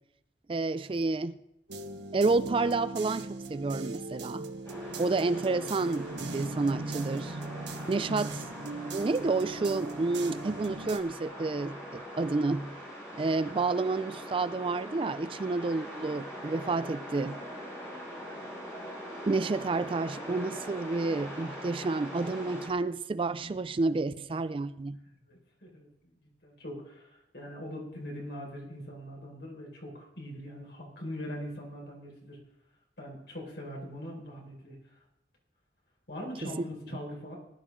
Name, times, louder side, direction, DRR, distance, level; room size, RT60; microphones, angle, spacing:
voice 1, 0.5-1.4 2.1-4.5 5.0-7.4 7.9-8.3 8.9-12.7 13.1-17.4 19.3-25.0 36.4-36.5, right 3 dB, 30° right, 14 dB, 0.4 m, -30 dB
sound 1, 1.7-11.0, right 2 dB, 85° right, 1.2 m, -39 dB
sound 2, 4.6-22.7, equal, 15° left, 5.3 m, -42 dB
voice 2, 8.1-8.4 17.9-18.3 25.1-32.4 33.0-34.8 36.1-37.4, equal, 70° left, -2 dB, 5.2 m, -42 dB
19.0 x 11.0 x 3.8 m, 0.87 s
head